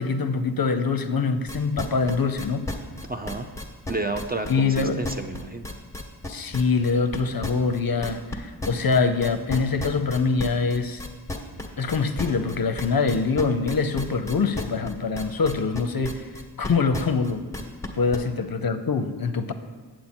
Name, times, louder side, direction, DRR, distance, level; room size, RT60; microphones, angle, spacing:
voice 1, 0.0-2.7 4.5-5.0 6.3-11.0 11.8-16.3 16.6-17.4 17.9-19.5, left 4 dB, 55° left, 9 dB, 0.6 m, -24 dB
sound 1, 1.5-8.3 8.6-18.2, left 2 dB, 5° left, 1.2 m, -33 dB
voice 2, 3.1-3.5 3.9-5.8, right 2 dB, 20° right, 6 dB, 0.5 m, -31 dB
8.4 x 7.6 x 4.3 m, 1.4 s
wide cardioid pair, 60°, 44 cm